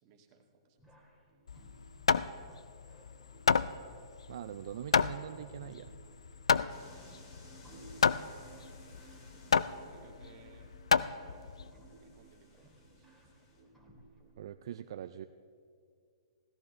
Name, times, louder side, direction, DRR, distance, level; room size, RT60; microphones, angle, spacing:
voice 1, 0.0-0.9 9.1-10.8 11.1-11.5 12.0-13.8, right 5 dB, 40° right, 2 dB, 1.7 m, -63 dB
sound 1, 0.8-14.6, right 1 dB, 5° left, 2.5 m, -60 dB
Hammer, 1.5-11.7, left 6 dB, 85° left, 0.4 m, -31 dB
voice 2, 4.3-5.9 14.4-15.3, right 10 dB, 60° right, 10 dB, 0.4 m, -43 dB
sound 2, 6.7-13.6, equal, 45° left, 3.3 m, -57 dB
17.0 x 14.0 x 3.2 m, 2.3 s
hypercardioid pair, 130°, 3 cm